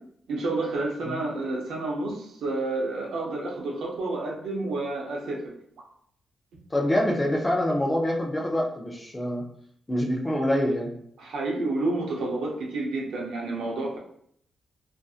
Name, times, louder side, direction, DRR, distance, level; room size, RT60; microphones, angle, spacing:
voice 1, 0.3-5.5 11.2-14.0, right 2 dB, 85° right, -1 dB, 0.6 m, -30 dB
voice 2, 6.7-9.4 9.9-10.9, left 1 dB, 15° left, -1 dB, 0.4 m, -25 dB
2.5 x 2.5 x 2.3 m, 0.68 s
wide cardioid pair, 150°, 0 cm